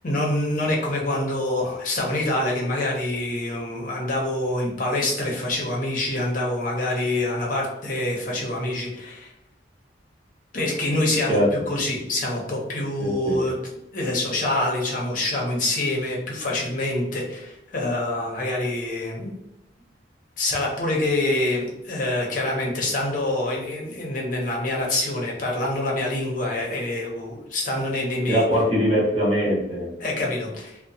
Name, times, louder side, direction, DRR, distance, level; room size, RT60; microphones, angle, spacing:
voice 1, 0.0-9.3 10.5-11.4 11.7-13.5 13.9-19.4 20.4-28.4 30.0-30.8, left 1 dB, 45° left, -2 dB, 0.7 m, -26 dB
voice 2, 13.0-13.4 28.3-29.9, equal, 35° right, -4 dB, 0.9 m, -22 dB
2.8 x 2.0 x 2.6 m, 0.87 s
head